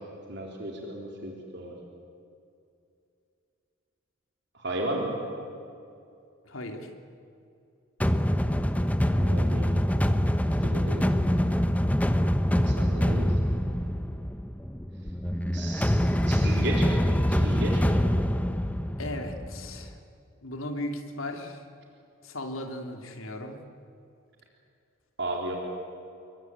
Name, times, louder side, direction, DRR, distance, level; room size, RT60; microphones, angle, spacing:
voice 1, 0.3-1.8 4.5-5.2 9.1-9.7 10.6-11.0 12.5-13.4 15.5-18.0 25.2-25.6, right 1 dB, 55° right, -1 dB, 4.1 m, -34 dB
voice 2, 6.4-6.9 19.0-20.0 20.4-21.6 22.2-23.6, left 1 dB, 85° left, 5 dB, 3.0 m, -36 dB
sound 1, 8.0-19.9, equal, 5° left, 0.9 m, -25 dB
27.5 x 23.0 x 9.5 m, 2.5 s
head